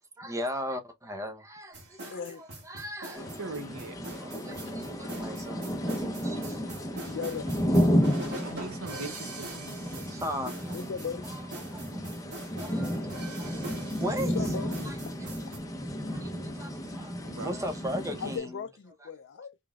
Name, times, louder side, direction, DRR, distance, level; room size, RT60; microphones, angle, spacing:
voice 1, 0.0-3.4 4.2-5.9 6.2-6.7 7.1-7.2 8.1-8.4 9.9-10.8 11.2-12.0 12.6-15.0 16.1-18.6 19.0-19.1 19.4-19.5, equal, 15° right, 0.8 m, -38 dB
sound 1, 1.7-15.6, right 2 dB, 55° right, 1.9 m, -43 dB
voice 2, 2.1-2.4 7.1-7.5 8.2-8.3 10.7-11.3 14.2-15.1 15.5-15.6 18.2-19.6, left 6 dB, 55° left, 0.4 m, -37 dB
sound 2, 3.1-18.4, equal, 15° left, 0.8 m, -32 dB
voice 3, 3.4-4.0 8.4-9.8 17.3-17.5, right 3 dB, 80° right, 1.0 m, -40 dB
3.8 x 3.5 x 2.4 m
head